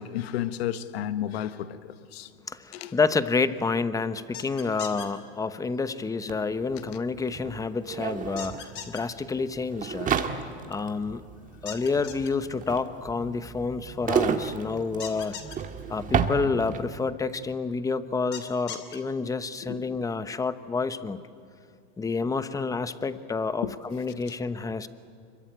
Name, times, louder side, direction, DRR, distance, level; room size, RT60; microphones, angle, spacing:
voice 1, 0.0-2.3 2.7-2.9 19.7-19.8 23.6-23.7, left 11 dB, 70° left, 1.3 m, -32 dB
voice 2, 2.5-10.1 10.7-11.2 11.6-15.4 15.9-21.2 22.0-24.9, left 4 dB, 10° left, 1.0 m, -29 dB
sound 1, 4.3-5.1 8.4-9.0 11.7-12.3 15.0-15.6 18.3-19.0, left 8 dB, 35° left, 3.1 m, -38 dB
sound 2, 6.3-6.4 6.6-17.0, right 7 dB, 25° right, 1.7 m, -32 dB
26.0 x 23.0 x 9.1 m
hypercardioid pair, 125°, 32 cm